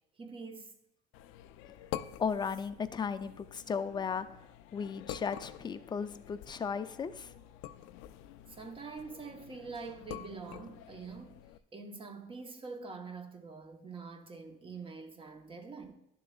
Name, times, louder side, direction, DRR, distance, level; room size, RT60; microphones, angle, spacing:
voice 1, 0.2-0.7 8.5-11.4 11.7-15.9, right 4 dB, 25° right, 0.9 m, -45 dB
sound 1, 1.1-11.6, left 12 dB, 80° left, 0.4 m, -47 dB
voice 2, 2.2-4.3 4.7-7.3, left 6 dB, 20° left, 0.4 m, -35 dB
11.0 x 6.8 x 2.4 m
cardioid pair, 110°, 20 cm